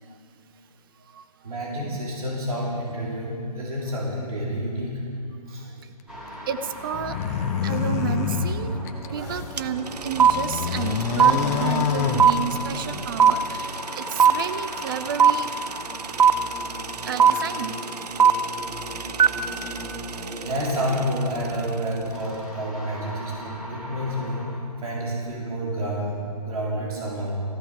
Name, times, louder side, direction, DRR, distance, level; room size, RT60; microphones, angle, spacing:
voice 1, 1.4-5.0 5.5-5.6 20.4-24.5 24.8-26.2 26.4-27.4, equal, 65° right, -4 dB, 3.5 m, -29 dB
sound 1, 6.1-24.5, equal, 5° right, 2.1 m, -38 dB
voice 2, 6.5-7.2 7.6-8.7 9.1-13.7 14.0-15.5 17.0-17.7 20.2-20.3, right 7 dB, 35° right, 10 dB, 0.7 m, -31 dB
sound 2, 6.9-9.6 10.1-12.9, left 6 dB, 25° left, 0.7 m, -27 dB
sound 3, 9.6-9.7 9.9-21.0, right 7 dB, 80° right, 0.6 m, -19 dB
14.5 x 14.0 x 4.9 m, 2.4 s
figure-of-eight pair, 140°, 20 cm